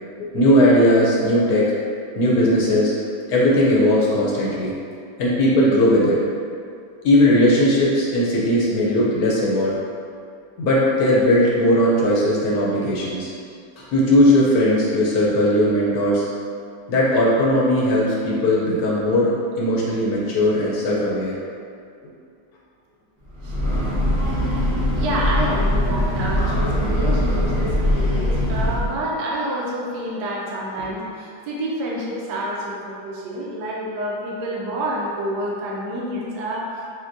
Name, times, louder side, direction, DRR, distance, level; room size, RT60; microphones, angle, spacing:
voice 1, 0.2-1.7 2.2-2.9 3.3-4.7 5.2-6.2 7.0-9.7 10.6-13.3 13.8-16.3 16.9-21.3, left 1 dB, 70° left, -5 dB, 0.9 m, -18 dB
Breathing / Train, 23.3-29.0, left 1 dB, 25° left, 0.4 m, -21 dB
voice 2, 24.7-36.9, right 1 dB, 70° right, -4 dB, 1.1 m, -28 dB
5.8 x 2.2 x 2.6 m, 2.4 s
omnidirectional pair, 2.1 m